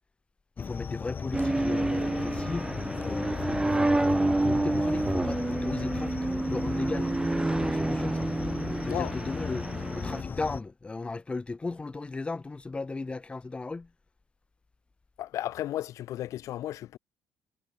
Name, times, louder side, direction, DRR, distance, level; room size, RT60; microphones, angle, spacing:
sound 1, 0.6-10.6, left 6 dB, 35° left, 2.4 m, -36 dB
voice 1, 0.6-7.1 7.5-8.3 8.8-9.7 9.9-13.9, left 3 dB, 20° left, 5.6 m, -36 dB
sound 2, 1.3-10.2, right 2 dB, 10° right, 2.3 m, -28 dB
voice 2, 8.8-9.1 15.2-17.0, left 13 dB, 65° left, 1.4 m, -34 dB
cardioid pair, 110°, 6 cm